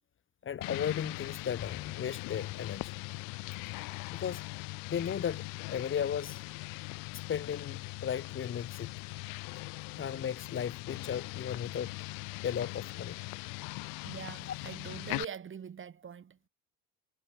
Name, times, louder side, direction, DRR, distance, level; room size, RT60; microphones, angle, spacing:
voice 1, 0.4-2.9 4.1-4.4 4.9-6.4 7.3-8.9 10.0-11.9 12.4-13.2, left 8 dB, 35° left, 1.3 m, -35 dB
sound 1, 0.6-15.2, left 30 dB, 65° left, 1.1 m, -41 dB
voice 2, 14.0-16.5, right 7 dB, 35° right, 2.7 m, -43 dB
hypercardioid pair, 75°, 36 cm